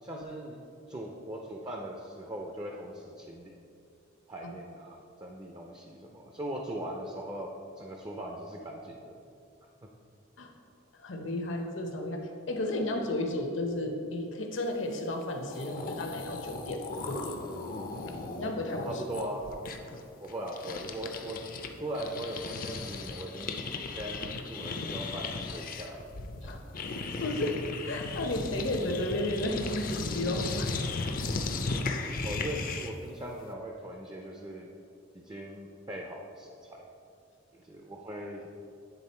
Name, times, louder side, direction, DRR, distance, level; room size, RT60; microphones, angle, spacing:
voice 1, 0.0-0.6 0.9-3.5 4.3-7.5 7.8-9.1 18.8-19.5 20.2-21.4 21.8-26.0 32.2-34.7 35.1-36.9 37.5-38.5, right 1 dB, 20° right, 1 dB, 0.4 m, -40 dB
voice 2, 11.0-17.5 18.3-19.0 26.4-26.6 27.2-27.6 27.8-30.7, left 1 dB, 70° left, 3 dB, 0.8 m, -33 dB
sound 1, 15.2-15.3 15.5-21.7 21.9-33.0, left 3 dB, 45° left, 0.5 m, -36 dB
9.2 x 3.6 x 4.3 m, 2.6 s
head